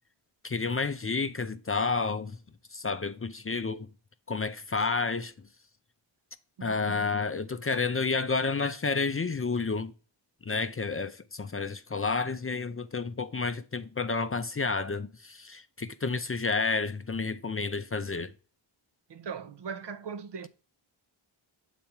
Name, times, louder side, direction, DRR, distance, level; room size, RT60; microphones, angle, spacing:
voice 1, 0.4-2.4 2.7-3.9 4.3-5.3 6.6-9.9 10.5-18.3, left 4 dB, 30° left, 0.5 m, -30 dB
voice 2, 6.6-7.1 19.1-20.5, right 6 dB, 55° right, 0.8 m, -40 dB
7.2 x 4.1 x 4.4 m
cardioid pair, 70°, 49 cm